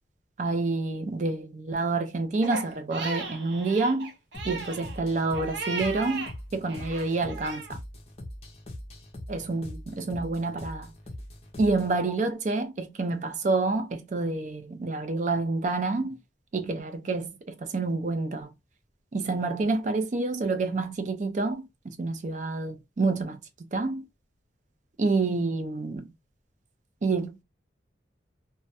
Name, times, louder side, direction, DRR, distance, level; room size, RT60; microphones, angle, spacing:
voice 1, 0.4-4.1 4.4-7.6 9.3-10.9 11.6-16.2 16.5-18.5 19.1-23.4 23.7-24.0 25.0-26.1 27.0-27.4, right 3 dB, 40° right, 0.4 m, -28 dB
Crying sobbing, 2.4-6.3 6.7-7.7, right 3 dB, 80° right, 0.7 m, -36 dB
sound 1, 4.3-12.0, left 1 dB, 35° left, 0.5 m, -42 dB
2.2 x 2.1 x 2.7 m
head